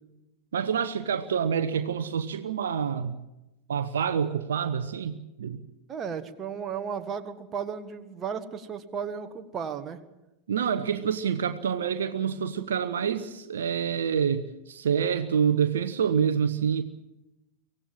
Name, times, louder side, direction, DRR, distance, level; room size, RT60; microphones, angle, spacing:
voice 1, 0.5-3.2 3.7-5.6 10.5-16.8, right 7 dB, 65° right, 0.9 m, -27 dB
voice 2, 5.9-10.0, right 7 dB, 25° right, 1.6 m, -34 dB
24.0 x 17.5 x 7.5 m
figure-of-eight pair, 90°, 0 cm